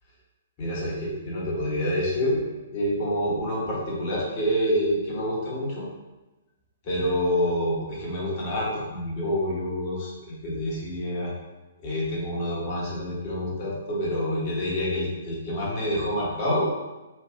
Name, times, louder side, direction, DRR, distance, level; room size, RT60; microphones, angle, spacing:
voice 1, 0.6-5.8 6.8-11.3 11.8-16.7, equal, 35° left, -5 dB, 1.2 m, -27 dB
3.3 x 2.6 x 3.4 m, 1.1 s
figure-of-eight pair, 120°, 0 cm